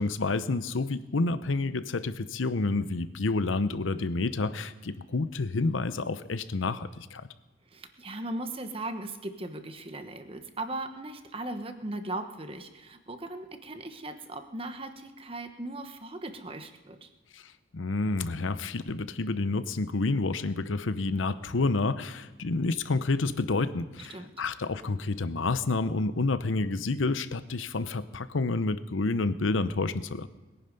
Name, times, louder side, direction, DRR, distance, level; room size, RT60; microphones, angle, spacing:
voice 1, 0.0-7.3 17.7-30.3, left 3 dB, 85° left, 13 dB, 0.8 m, -29 dB
voice 2, 7.7-17.1 24.1-24.3, right 2 dB, 30° right, 8 dB, 1.1 m, -38 dB
21.0 x 10.0 x 5.4 m, 1.2 s
head